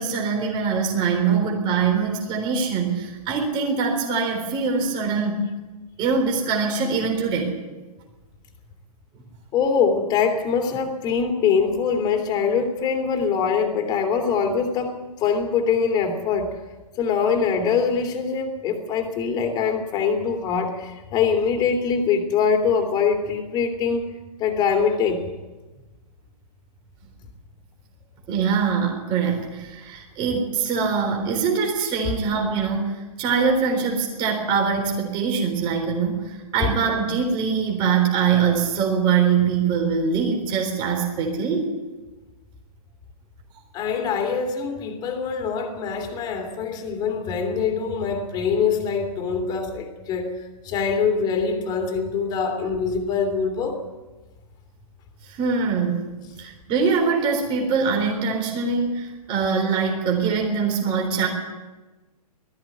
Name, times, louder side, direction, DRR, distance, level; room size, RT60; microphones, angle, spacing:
voice 1, 0.0-5.5 6.0-7.6 28.3-41.7 55.3-56.1 56.4-61.3, right 5 dB, 25° right, 1 dB, 3.8 m, -23 dB
voice 2, 9.5-16.5 17.0-24.0 24.4-25.2 32.0-32.1 36.6-36.7 43.7-50.4 50.6-53.8, left 6 dB, 20° left, 5 dB, 3.0 m, -23 dB
19.0 x 14.0 x 9.8 m, 1.2 s
hypercardioid pair, 150°, 20 cm